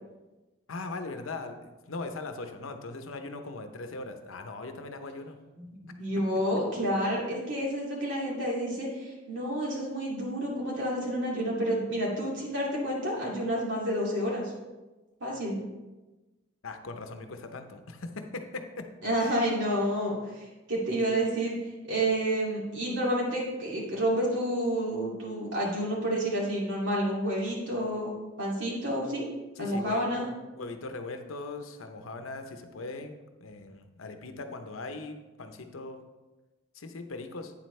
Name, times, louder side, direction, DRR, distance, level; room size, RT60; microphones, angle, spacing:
voice 1, 0.7-5.4 16.6-18.9 19.2-19.3 29.6-30.0 30.5-33.1 33.4-36.0 36.7-37.5, left 3 dB, 90° left, 7 dB, 0.8 m, -40 dB
voice 2, 5.6-14.5 15.2-15.6 19.0-21.5 21.9-28.1 28.4-29.2 29.6-30.3, right 1 dB, 70° right, -4 dB, 2.5 m, -29 dB
8.9 x 7.7 x 3.2 m, 1.1 s
head